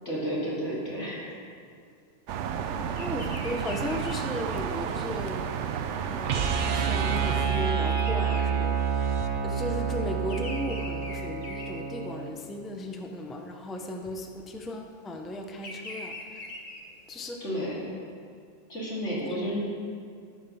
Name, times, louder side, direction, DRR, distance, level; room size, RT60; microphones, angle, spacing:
voice 1, 0.0-1.3 17.4-17.9 18.7-19.6, equal, 80° left, -7 dB, 3.5 m, -31 dB
sound 1, 2.3-7.5, right 7 dB, 80° right, 0.9 m, -32 dB
Bird vocalization bird call bird song, 2.9-9.3 9.6-12.5 13.0-13.3 14.3-17.3, left 2 dB, 45° left, 1.5 m, -43 dB
voice 2, 3.0-5.6 6.1-9.1 9.4-16.5 17.1-17.4 19.2-19.4, left 1 dB, ahead, 3 dB, 0.6 m, -36 dB
sound 2, 6.2-12.3, right 7 dB, 55° right, 0.7 m, -28 dB
14.5 x 5.4 x 6.8 m, 2.3 s
omnidirectional pair, 1.2 m